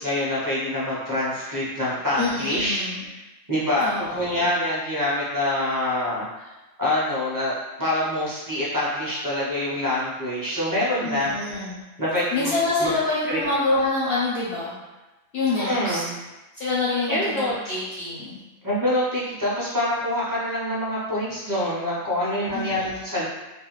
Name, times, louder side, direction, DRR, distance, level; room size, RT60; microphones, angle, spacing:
voice 1, 0.0-2.9 3.5-6.3 6.8-11.4 12.0-12.5 12.8-12.9 13.3-13.4 15.6-16.1 17.1-17.5 18.6-23.3, left 1 dB, 20° right, -8 dB, 0.5 m, -25 dB
voice 2, 2.2-3.1 3.8-4.5 11.0-11.8 12.3-14.8 15.3-16.1 16.6-18.4 22.5-23.1, left 3 dB, 65° left, -7 dB, 0.7 m, -26 dB
2.4 x 2.1 x 2.9 m, 1.1 s
omnidirectional pair, 1.4 m